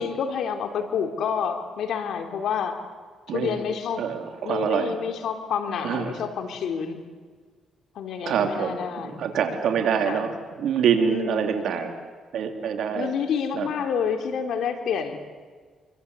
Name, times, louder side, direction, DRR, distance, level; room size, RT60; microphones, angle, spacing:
voice 1, 0.0-2.8 3.3-4.0 4.4-7.0 7.9-9.2 10.1-10.3 11.1-11.6 12.9-15.2, left 7 dB, 70° left, 5 dB, 3.4 m, -29 dB
voice 2, 3.3-3.6 4.0-5.0 5.8-6.2 8.3-11.9 12.3-13.1 13.5-13.7, right 7 dB, 70° right, 4 dB, 3.7 m, -25 dB
26.5 x 24.5 x 8.4 m, 1.5 s
cardioid pair, 90°, 0 cm